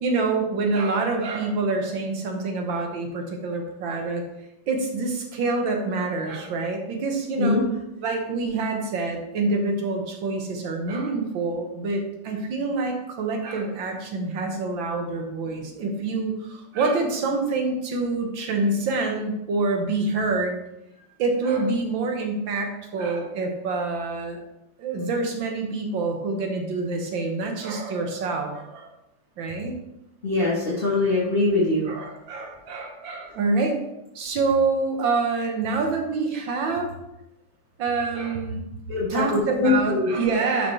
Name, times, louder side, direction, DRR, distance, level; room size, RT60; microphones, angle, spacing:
voice 1, 0.0-4.2 4.7-7.6 8.0-20.6 21.2-24.4 24.8-28.9 29.4-29.7 31.9-33.8 34.2-36.9 37.8-38.7 39.1-40.7, right 3 dB, 90° right, 3 dB, 1.9 m, -26 dB
voice 2, 30.2-31.9 38.9-40.1, left 2 dB, 30° left, -6 dB, 1.6 m, -22 dB
11.0 x 5.1 x 3.2 m, 0.91 s
omnidirectional pair, 2.0 m